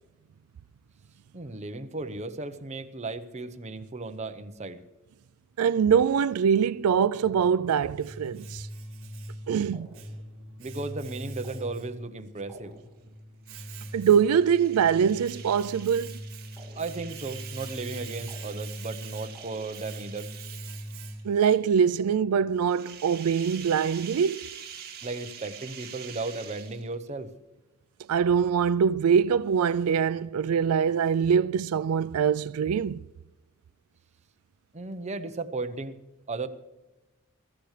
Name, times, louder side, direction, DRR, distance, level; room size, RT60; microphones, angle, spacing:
voice 1, 1.3-4.8 10.6-12.7 16.7-20.3 22.0-22.1 25.0-27.3 34.7-36.0 36.3-36.5, right 3 dB, 30° right, 0.9 m, -35 dB
voice 2, 5.6-8.7 9.5-9.9 13.9-16.2 21.2-24.6 28.1-33.0, right 7 dB, 80° right, 0.4 m, -23 dB
Domestic sounds home sounds, 7.3-21.5, right 1 dB, 65° right, 2.0 m, -42 dB
sound 1, 9.7-10.4 11.4-12.2 12.5-13.2 16.6-17.3 18.3-19.0 19.3-20.1, right 1 dB, ahead, 2.3 m, -53 dB
sound 2, 13.5-21.2 22.6-27.1, right 8 dB, 45° right, 2.5 m, -46 dB
23.5 x 13.5 x 3.3 m
head